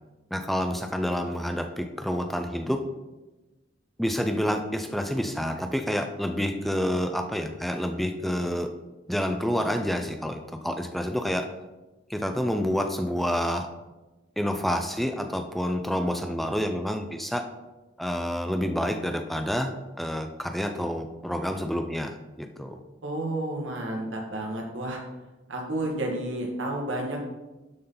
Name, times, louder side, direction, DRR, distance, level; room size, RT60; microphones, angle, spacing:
voice 1, 0.3-2.8 4.0-8.7 9.1-11.5 12.1-13.7 14.4-17.4 18.0-19.7 20.0-22.8, equal, ahead, 5 dB, 0.4 m, -28 dB
voice 2, 23.0-25.0 25.5-27.2, right 1 dB, 85° right, 0 dB, 1.7 m, -31 dB
12.0 x 4.1 x 3.9 m, 1.1 s
head